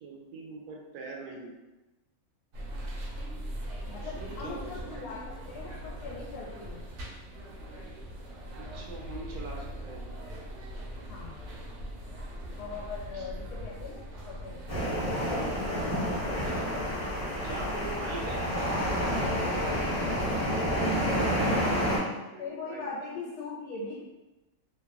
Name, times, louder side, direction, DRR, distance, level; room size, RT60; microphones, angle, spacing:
voice 1, 0.0-1.5 3.3-3.4 4.0-5.1 8.6-10.1 13.1-13.3 15.1-15.5 17.4-18.4 21.1-22.8, right 3 dB, 90° right, 0 dB, 1.1 m, -42 dB
sound 1, 2.5-20.5, equal, 65° right, 0.7 m, -41 dB
voice 2, 3.9-5.2 5.5-6.8 11.1-11.4 12.6-14.6 15.0-17.1 20.0-21.8 22.4-24.0, left 4 dB, 85° left, -4 dB, 1.1 m, -41 dB
sound 2, 14.7-22.0, equal, 15° left, 0.6 m, -29 dB
2.8 x 2.3 x 2.3 m, 1.0 s
omnidirectional pair, 1.6 m